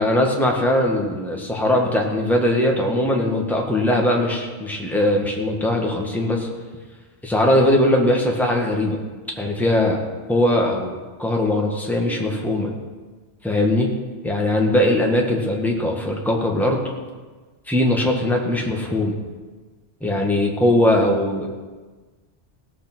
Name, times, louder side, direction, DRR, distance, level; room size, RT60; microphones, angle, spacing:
voice 1, 0.0-6.5 7.2-9.0 9.4-10.0 10.3-12.7 13.4-13.9 14.2-16.8 17.7-19.1 20.0-21.5, left 1 dB, ahead, -1 dB, 1.6 m, -20 dB
17.5 x 6.6 x 6.2 m, 1.3 s
omnidirectional pair, 1.2 m